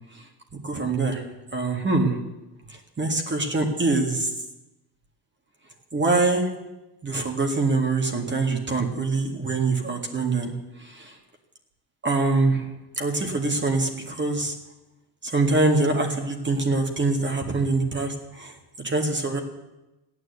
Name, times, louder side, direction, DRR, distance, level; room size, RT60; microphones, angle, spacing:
voice 1, 0.6-1.2 1.5-2.2 2.7-4.3 5.9-6.5 7.0-10.5 10.8-11.2 12.0-12.7 13.0-14.5 15.2-19.4, right 3 dB, 25° right, 3 dB, 1.8 m, -24 dB
15.5 x 9.4 x 8.1 m, 1.0 s
cardioid pair, 135°, 42 cm